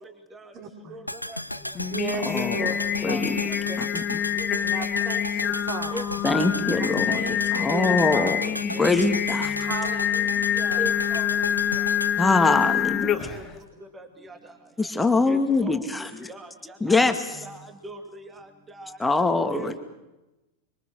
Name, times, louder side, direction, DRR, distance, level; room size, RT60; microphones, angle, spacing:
voice 1, 0.5-1.0 1.9-2.8 3.0-3.9 4.6-6.1 6.8-8.4 8.7-8.9 9.6-10.8 12.4-13.6, right 5 dB, 35° right, 3 dB, 4.4 m, -36 dB
sound 1, 1.1-13.3 13.5-13.6, left 1 dB, 90° left, 0.8 m, -35 dB
Singing, 1.7-13.5, left 10 dB, 25° left, 1.6 m, -26 dB
voice 2, 2.3-2.6 3.0-3.4 3.8-4.2 6.2-7.2 7.5-8.4 8.6-9.6 12.2-13.2 14.8-16.3 16.8-17.4 19.0-19.7, left 3 dB, 10° left, 7 dB, 2.2 m, -23 dB
voice 3, 2.8-3.2 4.4-4.6 5.9-6.0 6.3-6.5 8.4-8.8 10.8-11.3 13.9-14.1 15.3-17.0 17.4-17.6 17.8-18.2 18.8-19.0 19.5-19.8, right 2 dB, 15° right, 7 dB, 2.8 m, -39 dB
25.5 x 25.0 x 6.3 m, 0.99 s
figure-of-eight pair, 90°, 0 cm